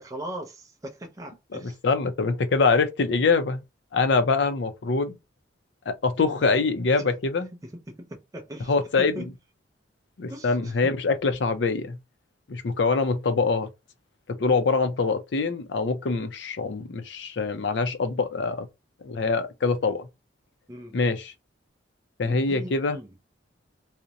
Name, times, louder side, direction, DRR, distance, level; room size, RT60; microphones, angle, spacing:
voice 1, 0.0-1.8 7.6-9.3 10.3-10.9 20.7-21.0 22.2-23.1, equal, 20° right, 0.5 m, -39 dB
voice 2, 1.5-3.6 3.9-5.2 5.9-7.5 8.7-9.3 10.2-12.0 12.5-13.7 14.3-18.7 19.0-20.1 20.9-21.3 22.2-23.0, left 4 dB, 65° left, 0.5 m, -24 dB
2.5 x 2.1 x 2.7 m
head